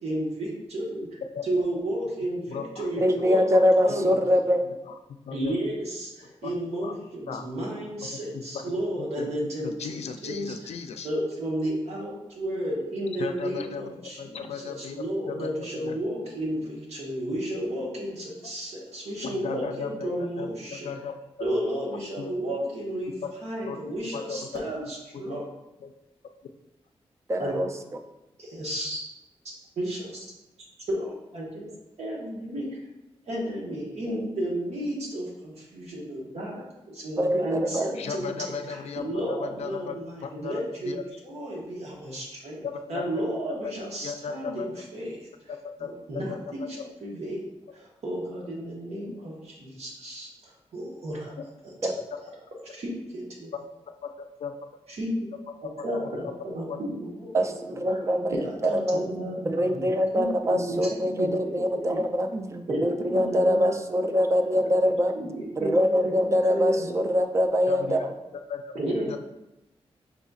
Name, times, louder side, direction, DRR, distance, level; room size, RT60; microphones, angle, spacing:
voice 1, 0.0-4.1 5.3-10.5 11.0-20.9 21.4-25.5 27.4-27.6 28.4-29.0 29.8-30.2 30.9-31.7 32.0-32.8 33.3-38.8 39.0-45.2 45.8-47.4 47.7-51.3 51.8-51.9 52.6-53.5 55.0-55.3 55.8-57.3 57.7-58.0 58.3-59.8 60.1-62.0 62.7-64.1 64.4-67.0 68.7-69.2, right 1 dB, 75° right, -3 dB, 1.2 m, -33 dB
voice 2, 2.5-3.0 4.1-5.6 6.4-6.9 7.3-7.4 8.1-8.6 9.0-11.1 13.2-16.0 19.2-20.1 20.4-21.1 22.2-22.3 23.6-23.8 24.1-24.4 25.1-25.5 25.8-25.9 37.9-41.1 42.6-44.8 45.5-45.9 46.3-46.7 51.4-51.5 54.0-54.1 54.4-54.5 56.7-56.8 67.7-68.1 68.3-68.7 69.0-69.2, left 6 dB, 75° left, 7 dB, 0.4 m, -37 dB
voice 3, 3.0-4.6 27.3-27.7 37.2-37.9 51.8-51.9 57.3-58.4 58.6-59.0 59.5-65.1 65.6-68.0, equal, 25° right, 5 dB, 0.4 m, -23 dB
5.3 x 4.0 x 2.4 m, 0.96 s
wide cardioid pair, 155°, 11 cm